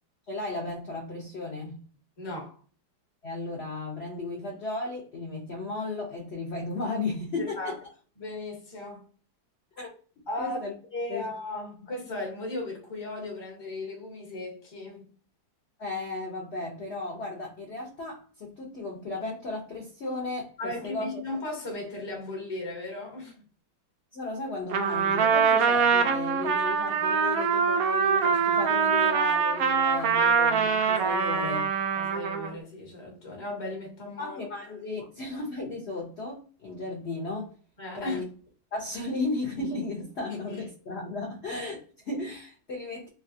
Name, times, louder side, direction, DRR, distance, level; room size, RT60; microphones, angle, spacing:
voice 1, 0.3-1.8 3.2-7.7 9.8-9.9 10.4-10.7 11.1-11.3 15.8-21.2 24.1-31.7 34.2-37.5 37.9-38.2 38.7-43.1, left 2 dB, 65° left, 0.6 m, -35 dB
voice 2, 2.2-2.6 7.4-7.8 8.2-9.0 10.3-10.6 10.9-15.1 20.6-23.4 32.0-34.4 37.8-38.2, left 2 dB, 20° left, 0.6 m, -36 dB
Trumpet, 24.7-32.6, right 6 dB, 85° right, 0.7 m, -24 dB
3.2 x 2.3 x 2.6 m
omnidirectional pair, 2.1 m